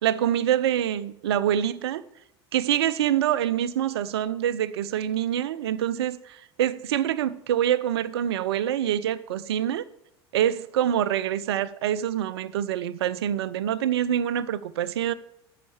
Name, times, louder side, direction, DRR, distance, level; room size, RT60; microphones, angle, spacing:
voice 1, 0.0-2.0 2.5-9.8 10.3-15.1, right 10 dB, 80° right, 0.7 m, -25 dB
13.5 x 5.8 x 7.1 m
hypercardioid pair, 80°, 13 cm